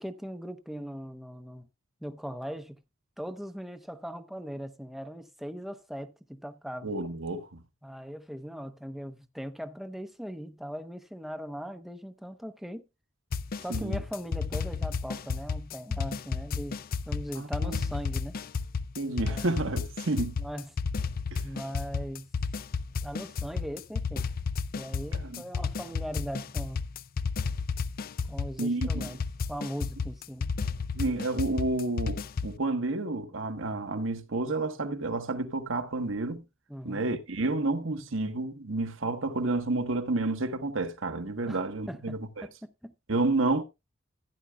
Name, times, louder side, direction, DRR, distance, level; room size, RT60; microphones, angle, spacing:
voice 1, 0.0-1.7 2.0-2.8 3.2-6.9 7.8-12.8 13.6-16.8 17.1-18.4 19.2-19.5 20.4-20.7 21.4-22.3 23.0-24.3 24.7-26.8 28.3-29.2 29.5-30.5 36.7-37.1 41.5-41.6 41.9-42.9, equal, ahead, 0.6 m, -39 dB
voice 2, 6.8-7.6 13.7-14.0 17.4-17.8 19.0-20.3 21.3-21.4 25.2-25.4 28.6-29.2 30.9-36.4 36.8-42.5 43.1-43.6, right 2 dB, 75° right, 1.2 m, -30 dB
sound 1, 13.3-32.6, left 5 dB, 45° left, 0.5 m, -32 dB
15.0 x 9.7 x 2.2 m
head